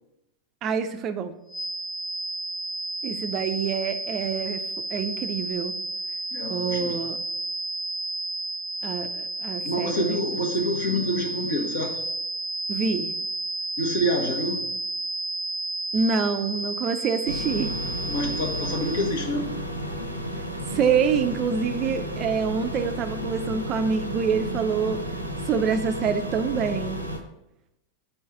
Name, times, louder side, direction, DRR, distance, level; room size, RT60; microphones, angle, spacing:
voice 1, 0.6-1.4 3.0-4.6 4.9-5.8 6.5-7.2 8.8-10.2 12.7-13.1 15.9-17.7 20.7-25.0 25.5-27.0, right 6 dB, 35° right, 9 dB, 0.4 m, -26 dB
sound 1, 1.5-19.2, right 2 dB, 5° left, 0.7 m, -32 dB
voice 2, 6.3-7.0 9.6-12.0 13.8-14.6 18.1-19.6, equal, 60° left, 2 dB, 1.2 m, -27 dB
sound 2, 17.3-27.2, equal, 85° right, 0.6 m, -32 dB
4.6 x 4.5 x 5.7 m, 0.89 s
figure-of-eight pair, 90°, 0 cm